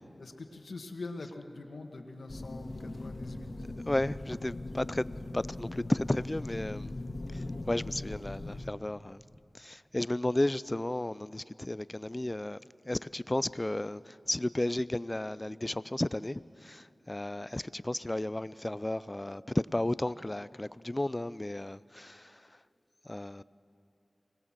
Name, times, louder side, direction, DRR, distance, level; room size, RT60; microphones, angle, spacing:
voice 1, 0.2-3.7, left 3 dB, 85° left, 1.8 m, -43 dB
sound 1, 2.3-8.7, left 2 dB, 55° left, 2.1 m, -40 dB
voice 2, 3.9-5.1 5.3-6.9 7.3-9.2 9.5-12.6 12.9-22.4 23.1-23.4, left 1 dB, 25° left, 0.5 m, -33 dB
25.0 x 19.5 x 7.6 m
wide cardioid pair, 50°, 0 cm